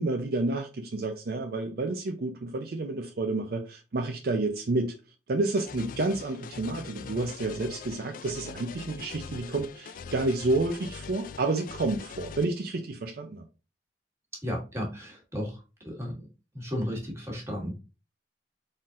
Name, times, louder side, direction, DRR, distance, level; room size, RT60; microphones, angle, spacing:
voice 1, 0.0-4.9 5.3-13.4, right 2 dB, 60° right, 0.5 m, -30 dB
sound 1, 5.6-12.5, left 5 dB, 50° left, 0.3 m, -42 dB
voice 2, 14.4-16.3 16.5-17.8, equal, 15° right, 1.6 m, -34 dB
4.1 x 3.9 x 2.4 m
head